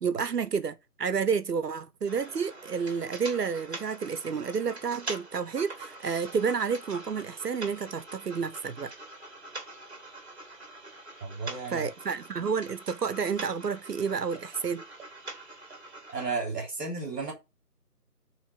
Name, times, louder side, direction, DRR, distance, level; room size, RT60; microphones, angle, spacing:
voice 1, 0.0-8.9 11.7-14.8, right 6 dB, 75° right, 0.8 m, -30 dB
sound 1, 2.1-16.3, right 2 dB, 40° right, 1.3 m, -44 dB
voice 2, 11.2-11.9 16.1-17.3, right 4 dB, 5° left, 1.8 m, -33 dB
6.3 x 3.2 x 5.5 m
figure-of-eight pair, 175°, 48 cm